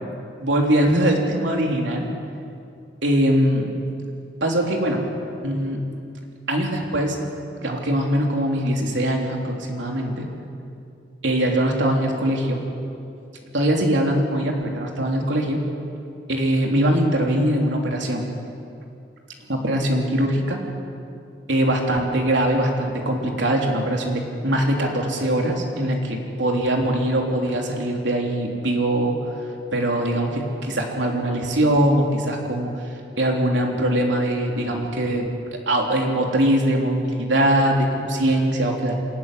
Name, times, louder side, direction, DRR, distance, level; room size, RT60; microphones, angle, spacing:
voice 1, 0.4-2.1 3.0-3.7 4.4-5.0 5.4-5.8 6.5-7.2 7.6-10.3 11.2-12.6 13.5-15.6 16.3-18.3 19.5-20.6 21.5-29.2 29.7-32.7 33.2-35.3 35.7-38.9, right 1 dB, 75° right, 0 dB, 3.3 m, -22 dB
27.0 x 12.0 x 9.8 m, 2.5 s
head